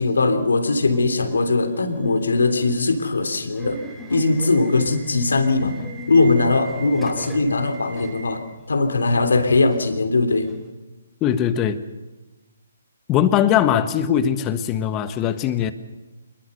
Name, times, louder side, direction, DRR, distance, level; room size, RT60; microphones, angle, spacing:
voice 1, 0.0-3.8 4.1-5.8 6.1-10.5, left 3 dB, 70° left, 8 dB, 3.3 m, -20 dB
Subway metro underground / Alarm, 0.9-10.7, right 1 dB, ahead, 4.7 m, -40 dB
voice 2, 11.2-11.8 13.1-15.7, left 9 dB, 20° left, 11 dB, 1.5 m, -20 dB
26.5 x 21.5 x 6.8 m, 1.1 s
figure-of-eight pair, 140°, 0 cm